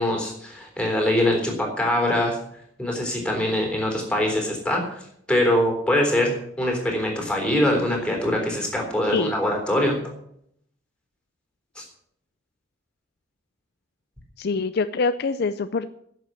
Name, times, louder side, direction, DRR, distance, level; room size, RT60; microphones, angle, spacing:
voice 1, 0.0-2.4 2.8-5.0 5.3-10.1 11.8-11.9, left 1 dB, 5° left, 1 dB, 3.7 m, -23 dB
voice 2, 14.4-15.9, left 4 dB, 55° left, 12 dB, 0.5 m, -25 dB
11.0 x 7.4 x 9.2 m, 0.71 s
head